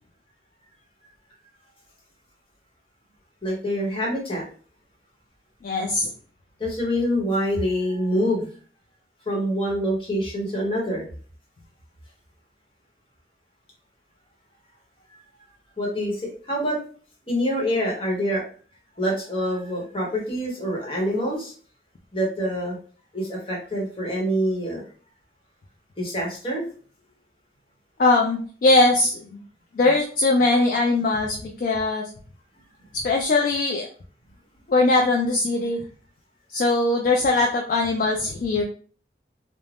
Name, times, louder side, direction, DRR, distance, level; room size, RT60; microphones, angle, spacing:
voice 1, 3.4-4.4 6.6-8.5 9.3-11.1 15.8-16.8 17.3-18.4 19.0-21.5 22.1-22.8 23.1-24.8 26.0-26.6, equal, 30° left, -2 dB, 0.9 m, -25 dB
voice 2, 5.6-6.1 28.0-29.4 29.7-32.0 32.9-33.9 34.7-35.8 36.5-38.6, left 2 dB, 50° left, 1 dB, 0.3 m, -21 dB
2.4 x 2.0 x 3.3 m, 0.42 s
head